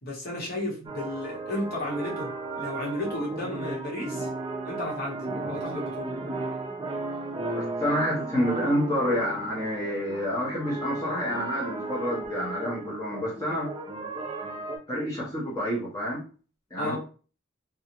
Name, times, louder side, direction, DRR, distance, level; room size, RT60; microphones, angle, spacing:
voice 1, 0.0-4.3 4.6-5.2 5.5-6.1 16.8-17.0, left 1 dB, 50° left, -3 dB, 1.1 m, -33 dB
sound 1, 0.9-14.8, right 2 dB, 25° right, 0.4 m, -35 dB
voice 2, 7.5-13.7 14.9-16.2 16.7-17.0, equal, 15° left, -6 dB, 0.9 m, -28 dB
2.7 x 2.3 x 2.9 m, 0.36 s
head